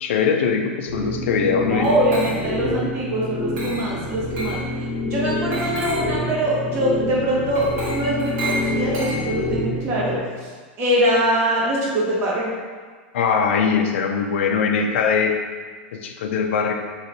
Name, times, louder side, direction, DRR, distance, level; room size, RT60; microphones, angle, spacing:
voice 1, 0.0-1.9 13.1-15.4 15.9-16.7, left 6 dB, 80° left, 4 dB, 0.5 m, -21 dB
sound 1, 0.9-10.2, left 2 dB, 60° left, 1.0 m, -27 dB
voice 2, 1.7-4.6 5.0-10.2 10.8-12.5, right 1 dB, 40° right, -5 dB, 1.3 m, -23 dB
Glass, 1.8-2.7 3.6-3.9 4.4-4.7 5.5-6.2 7.5-9.6, right 1 dB, 60° right, 1.4 m, -32 dB
3.0 x 3.0 x 4.0 m, 1.5 s
supercardioid pair, 125°, 6 cm